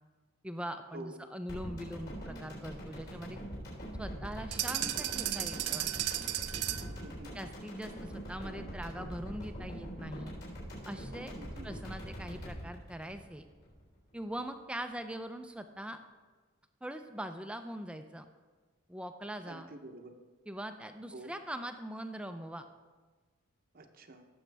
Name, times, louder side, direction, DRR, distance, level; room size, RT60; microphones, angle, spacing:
voice 1, 0.4-3.4 4.0-5.9 7.3-10.4 10.9-11.3 11.6-13.4 14.1-16.0 16.8-18.3 18.9-19.7 20.5-22.6, right 1 dB, 5° right, 7 dB, 0.4 m, -42 dB
sound 1, 1.5-13.8 14.1-14.2, equal, 50° left, 3.9 m, -43 dB
sound 2, 4.5-7.0, right 13 dB, 90° right, 0.5 m, -34 dB
voice 2, 7.0-7.4 11.4-11.7 19.4-20.1 21.1-21.3 23.7-24.2, right 2 dB, 40° right, 5 dB, 0.8 m, -48 dB
16.5 x 7.1 x 3.4 m, 1.3 s
head